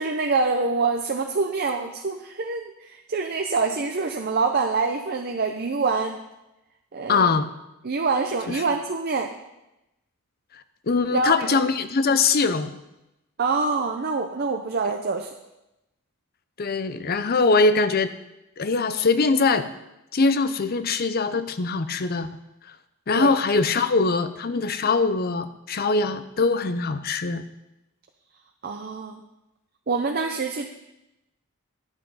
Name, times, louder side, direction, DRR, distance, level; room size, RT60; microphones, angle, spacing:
voice 1, 0.0-6.2 6.9-7.3 7.8-9.3 11.1-11.6 13.4-15.3 23.2-23.3 28.6-29.2 29.9-30.7, right 4 dB, 45° right, 4 dB, 0.6 m, -25 dB
voice 2, 7.1-7.5 8.5-8.6 10.5-12.8 16.6-18.1 18.6-19.7 20.1-22.3 22.7-22.8 23.1-27.4, left 4 dB, 45° left, 12 dB, 0.6 m, -22 dB
10.5 x 7.7 x 5.5 m, 0.93 s
head